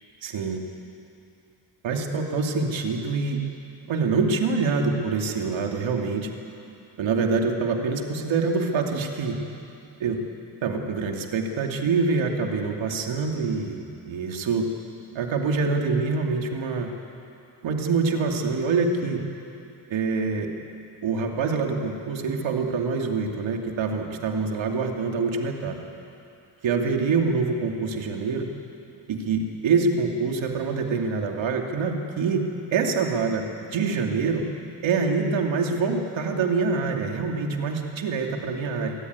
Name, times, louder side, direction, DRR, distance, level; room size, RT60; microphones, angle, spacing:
voice 1, 0.2-0.6 1.8-3.4 3.9-6.3 7.0-9.4 10.0-10.2 10.6-14.7 15.1-16.9 17.6-19.2 19.9-20.5 21.0-25.8 26.6-28.5 29.1-32.4 32.7-33.4 33.7-34.4 34.8-38.9, right 4 dB, 80° right, 2 dB, 2.7 m, -25 dB
26.0 x 17.5 x 9.6 m, 2.7 s
cardioid pair, 120°, 45 cm